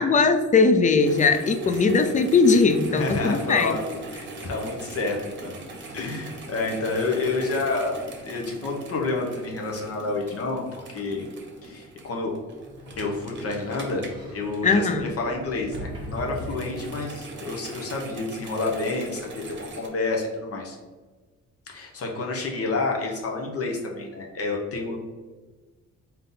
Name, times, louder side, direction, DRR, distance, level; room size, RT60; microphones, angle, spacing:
voice 1, 0.0-3.8 14.6-15.1, left 4 dB, 25° left, 8 dB, 0.3 m, -20 dB
sound 1, 1.0-15.1 15.5-19.9, right 2 dB, 40° right, 1.0 m, -42 dB
voice 2, 2.9-5.2 5.4-5.6 5.9-11.2 11.6-12.3 13.0-14.0 14.3-20.8 21.7-25.0, left 3 dB, 50° left, 0 dB, 0.9 m, -29 dB
Sliding door, 12.5-17.3, equal, 15° right, 1.4 m, -40 dB
3.7 x 2.8 x 3.7 m, 1.3 s
cardioid pair, 90°, 30 cm